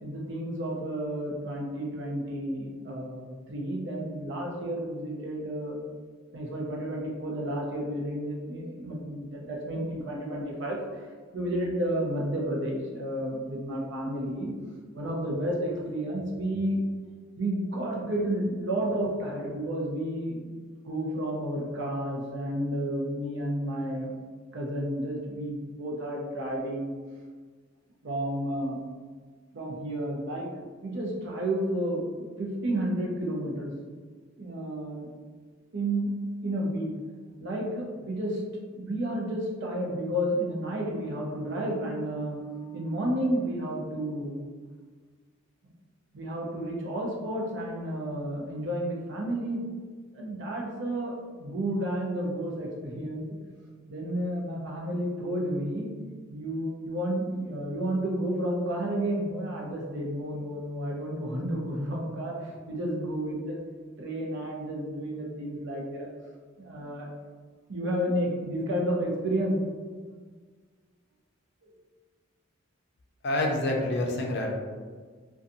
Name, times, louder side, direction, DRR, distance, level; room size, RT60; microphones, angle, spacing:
voice 1, 0.0-5.8 6.3-11.1 11.3-14.5 14.9-16.8 17.4-20.5 20.8-24.1 24.5-26.9 28.0-28.8 29.5-33.7 34.4-35.1 35.7-36.1 36.4-36.9 37.4-38.4 38.8-44.4 46.1-49.7 50.1-53.2 53.9-55.9 56.3-63.6 64.0-66.1 66.6-67.1 67.7-69.6 71.6-71.7, right 1 dB, 60° right, -2 dB, 0.6 m, -31 dB
voice 2, 73.2-74.5, left 1 dB, 55° left, 0 dB, 0.5 m, -27 dB
2.6 x 2.3 x 2.6 m, 1.5 s
head